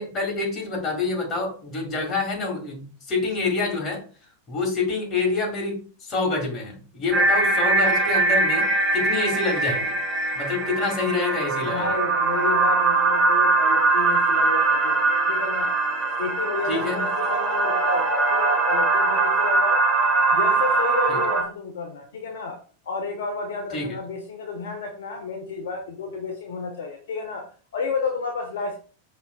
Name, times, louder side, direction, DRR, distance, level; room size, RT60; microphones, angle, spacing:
voice 1, 0.0-4.0 4.5-5.8 6.1-10.0 10.3-12.0 16.7-17.0 21.1-21.2 23.7-24.0, left 3 dB, 30° left, 0 dB, 1.9 m, -27 dB
sound 1, 7.1-21.4, right 3 dB, 25° right, 1.6 m, -21 dB
voice 2, 11.1-15.8 16.2-19.8 20.3-22.6 22.8-27.4 27.7-28.8, left 4 dB, 60° left, 2 dB, 0.7 m, -31 dB
5.4 x 3.2 x 2.2 m, 0.40 s
figure-of-eight pair, 90°, 0 cm